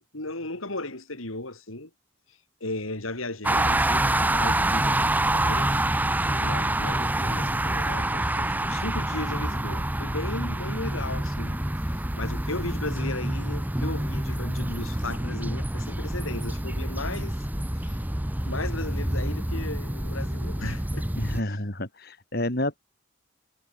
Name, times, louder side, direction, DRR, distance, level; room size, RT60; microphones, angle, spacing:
voice 1, 0.1-1.9 2.3-5.8 6.3-11.6 11.9-17.4 17.7-18.0 18.4-21.1 21.5-21.6, left 2 dB, 90° left, 5.5 m, -36 dB
sound 1, 3.4-21.4, right 1 dB, 10° right, 0.9 m, -27 dB
voice 2, 21.2-22.8, left 1 dB, 50° left, 4.2 m, -29 dB
head